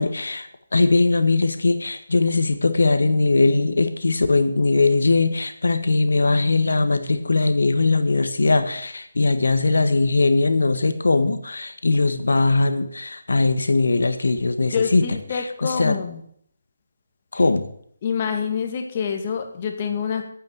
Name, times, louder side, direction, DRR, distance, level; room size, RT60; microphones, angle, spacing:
voice 1, 0.0-16.0 17.3-17.7, left 3 dB, 80° left, 9 dB, 1.6 m, -20 dB
voice 2, 14.7-16.2 18.0-20.3, left 6 dB, 35° left, 5 dB, 2.1 m, -26 dB
9.3 x 8.9 x 8.2 m, 0.66 s
figure-of-eight pair, 160°, 0 cm